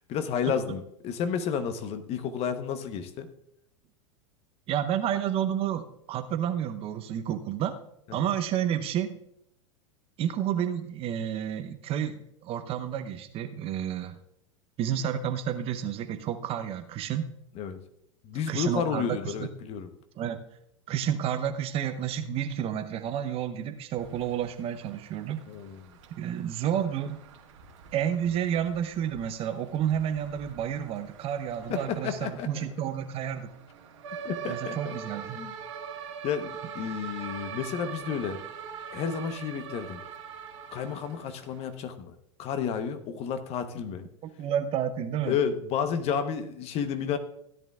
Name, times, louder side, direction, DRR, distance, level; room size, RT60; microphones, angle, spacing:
voice 1, 0.1-3.3 8.1-8.3 17.5-17.8 18.2-19.9 25.5-25.9 31.7-32.6 34.2-35.0 35.3-35.5 36.2-38.4 38.9-40.0 40.7-42.1 42.4-44.1 45.2-47.2, left 7 dB, 40° left, 9 dB, 1.0 m, -31 dB
voice 2, 4.7-7.8 8.1-9.2 10.2-14.2 14.8-17.3 18.5-19.5 20.2-20.4 20.9-25.4 26.1-27.2 27.9-33.5 34.5-35.4 44.4-45.4, right 9 dB, 35° right, 9 dB, 0.8 m, -30 dB
sound 1, 24.0-41.7, right 7 dB, 65° right, 2.2 m, -43 dB
16.0 x 10.5 x 2.4 m, 0.76 s
hypercardioid pair, 95°, 16 cm